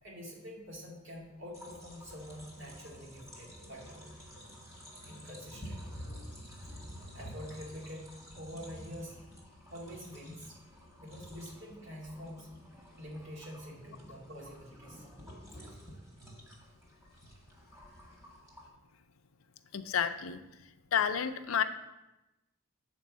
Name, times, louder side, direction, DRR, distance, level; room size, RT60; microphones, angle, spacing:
voice 1, 0.0-4.1 5.0-5.9 7.1-9.2 9.7-10.6 11.0-12.6 13.0-15.1, equal, 65° right, -3 dB, 2.3 m, -46 dB
sound 1, 1.5-18.7, equal, 15° right, 1.7 m, -50 dB
voice 2, 19.7-20.4 20.9-21.6, left 8 dB, 85° left, 9 dB, 0.5 m, -30 dB
7.4 x 4.5 x 6.2 m, 0.99 s
head